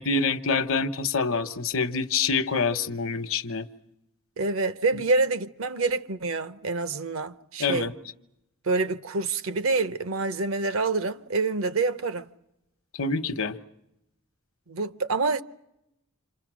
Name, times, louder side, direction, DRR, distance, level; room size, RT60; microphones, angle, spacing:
voice 1, 0.0-3.7 7.6-7.9 12.9-13.6, left 4 dB, 70° left, 1.0 m, -26 dB
voice 2, 4.4-7.9 8.6-12.3 14.7-15.4, right 3 dB, 70° right, 0.9 m, -27 dB
28.0 x 26.5 x 6.2 m
head